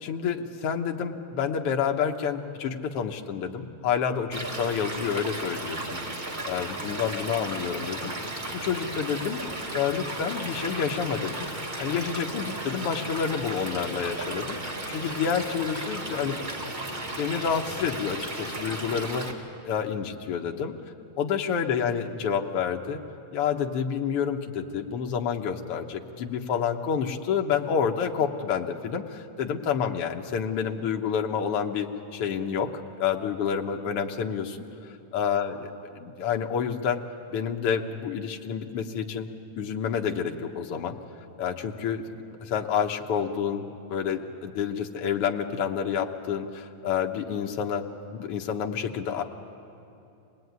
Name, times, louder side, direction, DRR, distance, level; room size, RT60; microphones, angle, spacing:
voice 1, 0.0-6.0 6.4-8.3 8.5-9.5 9.7-11.5 11.8-16.4 17.2-20.7 21.2-23.0 23.3-32.7 33.0-34.6 35.1-35.5 36.0-37.0 37.3-39.3 39.6-40.9 41.4-42.0 42.4-47.8 48.1-49.2, left 7 dB, 60° left, 3 dB, 1.6 m, -29 dB
Stream / Liquid, 4.3-19.3, right 2 dB, 25° right, 1.0 m, -35 dB
26.0 x 19.5 x 9.5 m, 2.7 s
omnidirectional pair, 3.8 m